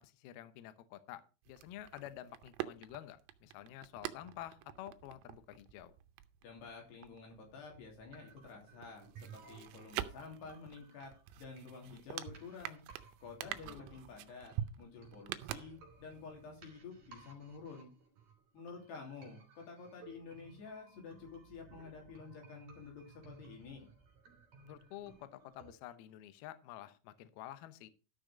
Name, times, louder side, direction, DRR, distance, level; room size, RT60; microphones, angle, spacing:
voice 1, 0.0-5.9 13.4-13.9 24.7-27.9, left 13 dB, 80° left, 12 dB, 2.2 m, -50 dB
sound 1, 1.4-8.0 8.3-16.2 16.5-16.6, right 13 dB, 90° right, 3.3 m, -46 dB
voice 2, 6.4-11.1 11.4-12.8 13.2-17.9 18.5-23.9, left 5 dB, 60° left, 1 dB, 5.1 m, -50 dB
sound 2, 7.7-25.7, right 5 dB, 40° right, 4.3 m, -59 dB
13.0 x 6.4 x 5.1 m, 0.33 s
omnidirectional pair, 5.6 m